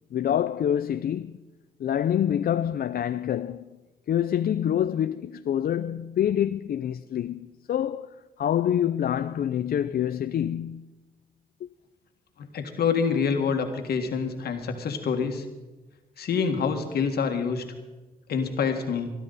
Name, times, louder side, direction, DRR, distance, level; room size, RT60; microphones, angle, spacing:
voice 1, 0.1-1.4 1.8-3.7 4.1-10.8, left 10 dB, 70° left, 0.5 m, -26 dB
voice 2, 12.4-15.5 16.2-17.6 18.3-19.1, left 6 dB, 85° left, 1.8 m, -26 dB
22.0 x 12.5 x 4.1 m
cardioid pair, 70°, 16 cm